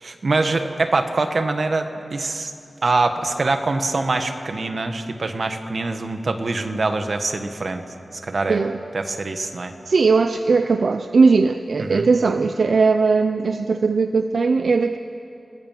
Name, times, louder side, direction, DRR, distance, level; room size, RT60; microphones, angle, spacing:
voice 1, 0.0-2.5 2.8-7.8 8.1-8.6 8.9-9.7 11.8-12.1, right 3 dB, 60° right, 7 dB, 1.7 m, -24 dB
voice 2, 9.9-15.0, right 4 dB, 80° right, 9 dB, 0.7 m, -18 dB
29.5 x 20.5 x 7.6 m, 2.9 s
wide cardioid pair, 90°, 0 cm